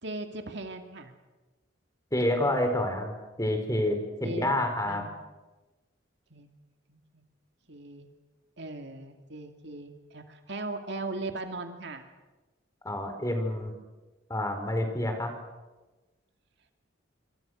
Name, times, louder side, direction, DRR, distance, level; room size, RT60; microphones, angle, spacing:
voice 1, 0.0-1.1 4.2-4.5 4.9-5.1 6.3-6.6 6.9-7.2 7.7-8.1 8.6-12.1, right 2 dB, 65° right, 5 dB, 2.6 m, -38 dB
voice 2, 2.1-5.0 12.8-13.7 14.3-15.3, left 1 dB, 15° left, 5 dB, 4.5 m, -28 dB
27.0 x 26.0 x 6.5 m, 1.2 s
head